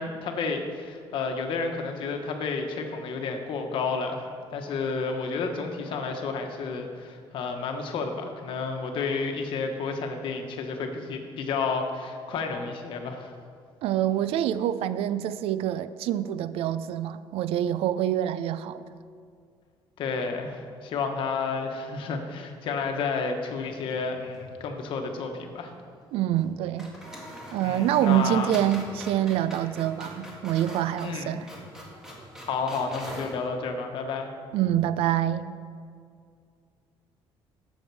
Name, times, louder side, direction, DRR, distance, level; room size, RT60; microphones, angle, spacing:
voice 1, 0.0-13.3 20.0-25.7 27.6-28.5 31.0-31.4 32.5-34.3, left 4 dB, 55° left, 1.2 m, -31 dB
voice 2, 13.8-18.8 26.1-26.9 27.5-31.5 34.5-35.5, right 11 dB, 75° right, 0.4 m, -26 dB
sound 1, 23.7-24.5 24.8-24.9 26.3-26.5 26.8-33.4, equal, 5° right, 1.7 m, -43 dB
12.5 x 7.2 x 4.7 m
cardioid pair, 165°, 10 cm